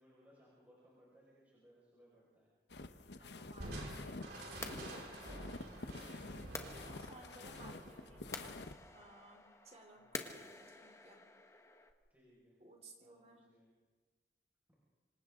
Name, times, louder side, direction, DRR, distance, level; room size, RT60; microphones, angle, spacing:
voice 1, 0.0-2.5 7.3-8.1 10.0-10.3 12.1-12.6 13.0-13.7, equal, 10° right, -7 dB, 5.7 m, -65 dB
sound 1, 2.7-8.7, left 2 dB, 70° left, 1.1 m, -49 dB
voice 2, 3.2-5.0 7.0-8.6 8.9-11.2 12.6-13.5, right 2 dB, 35° right, 3 dB, 3.6 m, -59 dB
sound 2, 3.6-11.9, left 3 dB, 15° left, 1.4 m, -51 dB
Crushing, 3.6-9.0, right 1 dB, 65° right, 5.0 m, -50 dB
27.0 x 26.0 x 3.9 m, 1.3 s
head